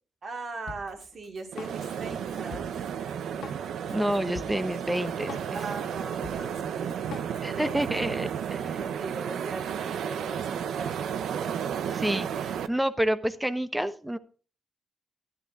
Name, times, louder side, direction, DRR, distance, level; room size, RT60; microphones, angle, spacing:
voice 1, 0.2-2.9 5.5-6.9 7.3-8.0 8.5-11.0, right 3 dB, 50° right, 4 dB, 2.5 m, -40 dB
Drum kit, 0.7-8.0, left 6 dB, 70° left, 1.4 m, -45 dB
sound 1, 1.5-12.7, right 8 dB, 85° right, 0.7 m, -33 dB
voice 2, 3.9-5.6 7.4-8.8 11.8-14.2, right 1 dB, 5° right, 12 dB, 1.0 m, -29 dB
12.0 x 11.5 x 3.7 m, 0.38 s
cardioid pair, 105°, 0 cm